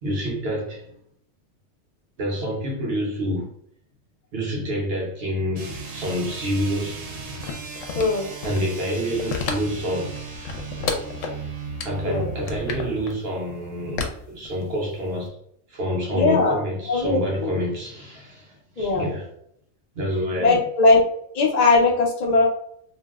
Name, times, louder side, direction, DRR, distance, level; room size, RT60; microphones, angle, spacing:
voice 1, 0.0-0.9 2.2-3.5 4.3-7.0 8.4-10.2 11.8-15.4 15.7-19.3 19.9-20.6, equal, 55° right, 1.0 m, -27 dB
sound 1, 5.5-13.1, right 4 dB, 85° right, 1.1 m, -36 dB
sound 2, 7.4-8.8 9.1-9.8 10.2-11.4 11.8-11.9 12.4-13.1 14.0-14.9 15.3-15.4, left 5 dB, 80° left, 0.9 m, -30 dB
voice 2, 8.0-8.3 12.0-12.3 16.1-16.6 16.9-17.5 18.8-19.1 20.4-21.0 21.3-22.4, left 3 dB, 45° left, 0.5 m, -19 dB
2.6 x 2.0 x 3.4 m
omnidirectional pair, 1.3 m